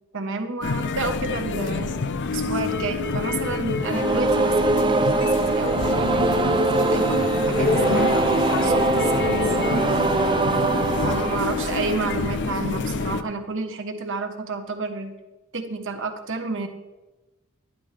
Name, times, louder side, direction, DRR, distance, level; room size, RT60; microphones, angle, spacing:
voice 1, 0.1-1.9 2.3-9.5 11.0-15.1 15.5-16.7, right 3 dB, 60° right, 6 dB, 1.2 m, -30 dB
sound 1, 0.6-13.2, left 4 dB, 55° left, 0.6 m, -27 dB
sound 2, 3.8-12.7, right 3 dB, 20° right, 0.4 m, -23 dB
12.0 x 11.5 x 3.4 m, 1.1 s
head